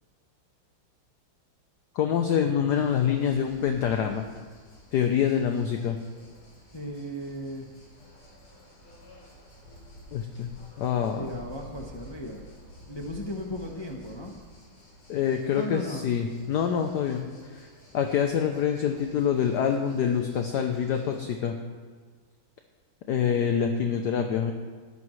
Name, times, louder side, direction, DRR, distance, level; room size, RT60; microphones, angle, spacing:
voice 1, 1.9-4.2 4.9-6.0 10.1-10.5 10.8-11.3 15.1-17.6 17.9-21.5 23.1-24.5, left 8 dB, 65° left, 5 dB, 1.1 m, -26 dB
sound 1, 2.7-21.3, equal, 90° left, 4.8 m, -51 dB
voice 2, 6.7-7.7 11.2-12.6 12.9-14.4 15.5-16.0, equal, 35° left, 1 dB, 0.4 m, -36 dB
19.0 x 11.0 x 3.2 m, 1.5 s
omnidirectional pair, 2.3 m